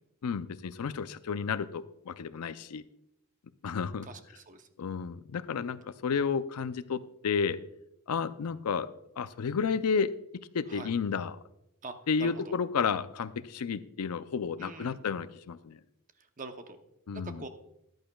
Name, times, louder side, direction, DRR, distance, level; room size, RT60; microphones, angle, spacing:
voice 1, 0.2-2.8 3.6-4.1 4.8-7.6 8.1-8.9 9.2-10.1 10.5-11.4 12.1-15.8 17.1-17.5, left 6 dB, 80° left, 14 dB, 0.5 m, -31 dB
voice 2, 4.0-4.7 10.7-10.9 11.8-12.5 14.6-15.0 16.4-16.8 17.1-17.5, right 3 dB, 35° right, 7 dB, 0.8 m, -44 dB
14.0 x 10.5 x 2.3 m, 0.81 s
head